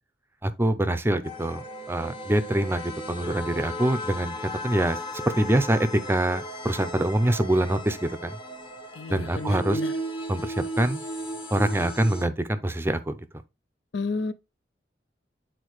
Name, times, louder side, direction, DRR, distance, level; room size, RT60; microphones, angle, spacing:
voice 1, 0.4-4.4 4.6-5.0 5.4-5.8 6.1-8.4 9.1-9.8 10.3-11.0 11.5-13.2, right 1 dB, 15° right, 0.5 m, -25 dB
sound 1, 1.2-12.3, equal, 30° left, 1.1 m, -36 dB
voice 2, 8.9-9.9 13.9-14.3, left 3 dB, 70° left, 0.6 m, -31 dB
8.5 x 4.2 x 3.0 m
head